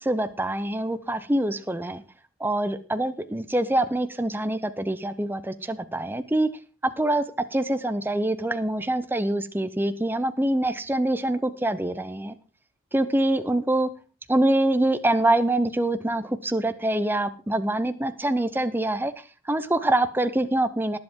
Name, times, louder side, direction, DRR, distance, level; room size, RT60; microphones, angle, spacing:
voice 1, 0.0-2.0 2.4-6.5 7.0-7.2 7.5-12.3 12.9-13.9 14.3-21.0, right 1 dB, 10° right, 11 dB, 0.6 m, -25 dB
19.0 x 7.9 x 3.7 m, 0.35 s
head